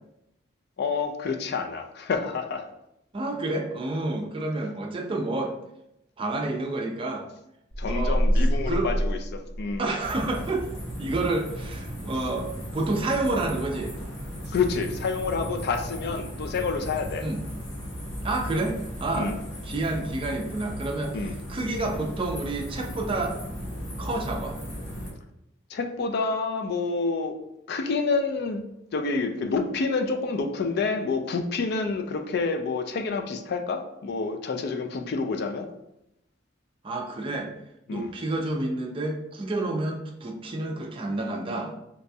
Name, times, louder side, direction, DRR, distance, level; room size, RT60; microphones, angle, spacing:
voice 1, 0.8-2.7 7.8-9.9 14.5-17.3 19.1-19.3 21.1-21.3 25.7-27.3 27.7-28.6 28.9-35.7 37.9-38.1, left 4 dB, 55° left, 6 dB, 0.3 m, -28 dB
voice 2, 3.1-5.5 6.2-7.2 7.8-8.2 8.7-8.9 9.8-10.7 11.0-13.9 17.2-17.4 18.2-19.3 19.6-21.2 21.5-23.4 24.0-24.6 36.8-37.5 37.9-41.7, right 2 dB, 25° right, 2 dB, 0.4 m, -29 dB
sound 1, 7.7-10.1, equal, ahead, 0.8 m, -25 dB
sound 2, 10.0-25.1, equal, 80° left, 1.0 m, -36 dB
3.9 x 2.3 x 2.6 m, 0.82 s
head